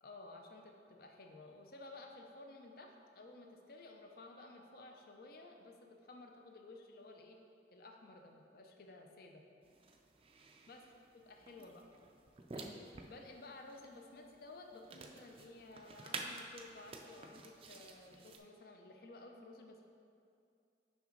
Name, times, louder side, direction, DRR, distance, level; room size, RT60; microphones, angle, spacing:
voice 1, 0.0-7.4 7.7-9.4 10.7-10.8 11.3-11.9 12.5-19.8, left 2 dB, 55° left, 3 dB, 0.6 m, -54 dB
sound 1, 9.6-18.4, right 3 dB, 30° right, 0.4 m, -51 dB
5.9 x 5.2 x 3.8 m, 2.4 s
head